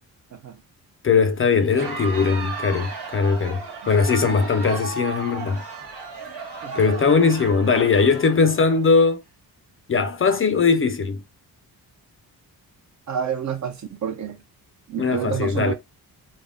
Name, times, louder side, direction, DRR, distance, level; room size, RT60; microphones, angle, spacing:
voice 1, 0.3-0.6 6.6-6.8 13.1-14.4 14.9-15.7, right 8 dB, 45° right, 0.6 m, -29 dB
voice 2, 1.0-5.6 6.7-9.2 9.9-11.2 15.0-15.7, left 5 dB, 35° left, 0.4 m, -20 dB
Crowd, 1.6-9.1, right 4 dB, 80° right, 1.3 m, -35 dB
3.4 x 2.1 x 3.7 m
wide cardioid pair, 160°, 38 cm